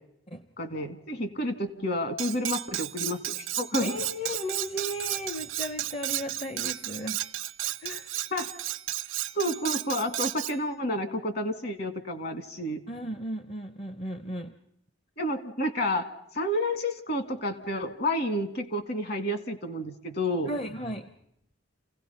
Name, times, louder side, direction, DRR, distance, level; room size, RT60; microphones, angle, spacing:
voice 1, 0.6-4.0 8.3-8.5 9.3-12.8 15.2-16.0 16.3-20.5, left 1 dB, 50° left, 9 dB, 2.2 m, -30 dB
Cutlery silverware, 2.2-10.6, right 14 dB, 85° right, 0.7 m, -33 dB
voice 2, 3.8-7.2 7.8-8.1 12.9-14.5 20.4-21.1, equal, 30° left, 10 dB, 0.8 m, -35 dB
29.5 x 17.0 x 5.7 m, 0.76 s
head